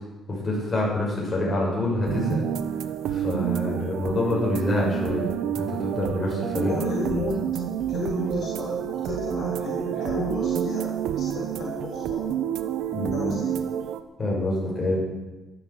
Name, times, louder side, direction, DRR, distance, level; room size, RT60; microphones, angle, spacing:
voice 1, 0.3-2.4 3.1-7.2 12.9-13.3 14.2-15.0, left 1 dB, 25° left, -4 dB, 7.1 m, -26 dB
sound 1, 2.1-14.0, right 9 dB, 90° right, 1.0 m, -29 dB
voice 2, 6.6-7.5 7.9-12.2 13.1-13.6, left 3 dB, 55° left, -4 dB, 3.6 m, -33 dB
13.0 x 11.5 x 8.3 m, 1.1 s
cardioid pair, 145°, 0 cm